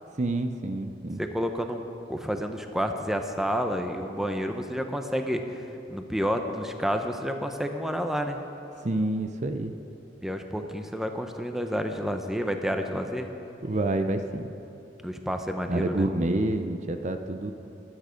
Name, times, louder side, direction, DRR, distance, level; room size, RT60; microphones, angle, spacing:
voice 1, 0.2-1.2 8.8-9.7 13.6-14.5 15.7-17.5, right 2 dB, 40° right, 7 dB, 0.7 m, -28 dB
voice 2, 1.2-1.8 2.1-5.4 5.9-8.4 10.2-13.3 15.0-16.1, equal, ahead, 5 dB, 0.7 m, -29 dB
23.0 x 9.2 x 5.1 m, 2.8 s
head